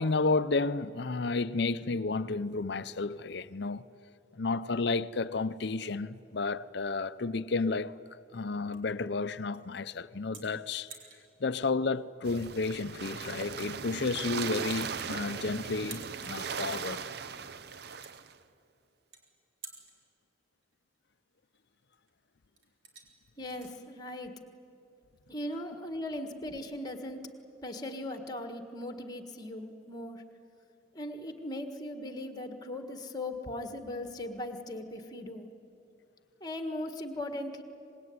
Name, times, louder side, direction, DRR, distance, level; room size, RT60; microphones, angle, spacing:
voice 1, 0.0-3.9 4.3-8.0 8.3-10.9 11.4-17.0, left 3 dB, 55° left, 0.6 m, -32 dB
sound 1, 6.6-25.3, right 5 dB, 75° right, 4.0 m, -56 dB
sound 2, 12.2-18.3, right 6 dB, 55° right, 0.7 m, -38 dB
voice 2, 23.4-24.3 25.3-27.3 27.6-30.2 30.9-35.5 36.4-37.6, left 1 dB, 20° left, 1.6 m, -38 dB
25.0 x 20.5 x 9.6 m
head